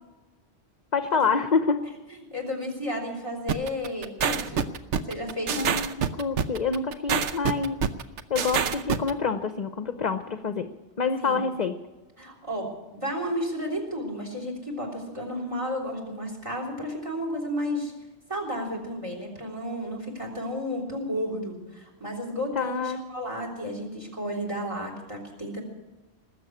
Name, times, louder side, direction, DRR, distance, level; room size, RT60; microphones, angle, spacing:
voice 1, 0.9-1.8 5.6-7.8 8.3-10.7 11.0-11.7 22.5-23.0, left 5 dB, 45° left, 9 dB, 0.8 m, -27 dB
voice 2, 2.1-4.7 5.1-5.6 11.2-11.4 12.2-12.7 12.9-17.9 18.3-25.6, equal, 25° right, 2 dB, 3.6 m, -32 dB
sound 1, 3.5-9.1, right 7 dB, 90° right, 1.1 m, -26 dB
19.5 x 7.6 x 9.6 m, 1.1 s
omnidirectional pair, 1.2 m